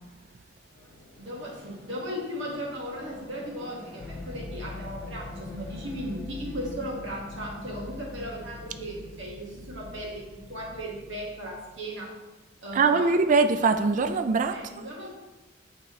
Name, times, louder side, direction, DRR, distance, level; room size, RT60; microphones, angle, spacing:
sound 1, 0.7-9.9, left 1 dB, 10° left, 1.5 m, -47 dB
voice 1, 1.2-12.1 12.6-13.2 14.5-15.1, equal, 75° right, -3 dB, 1.7 m, -37 dB
sound 2, 4.0-11.9, left 2 dB, 50° left, 0.5 m, -43 dB
voice 2, 12.7-14.9, right 4 dB, 40° right, 8 dB, 0.3 m, -23 dB
8.4 x 3.7 x 3.1 m, 1.1 s
head